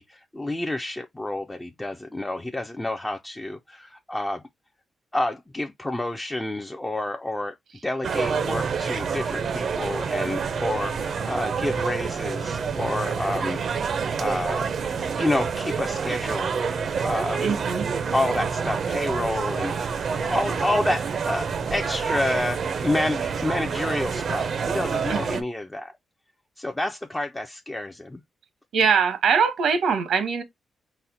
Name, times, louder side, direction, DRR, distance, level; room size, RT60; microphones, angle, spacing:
voice 1, 0.0-4.4 5.1-7.6 7.8-13.6 14.1-14.7 15.2-16.5 17.0-17.6 18.1-25.9 26.6-28.2, left 1 dB, 10° left, 0.3 m, -29 dB
sound 1, 8.0-25.4, right 6 dB, 55° right, 0.5 m, -27 dB
voice 2, 17.4-17.9 25.1-25.4 28.7-30.4, right 6 dB, 80° right, 0.9 m, -22 dB
4.2 x 2.1 x 3.8 m
cardioid pair, 130°, 0 cm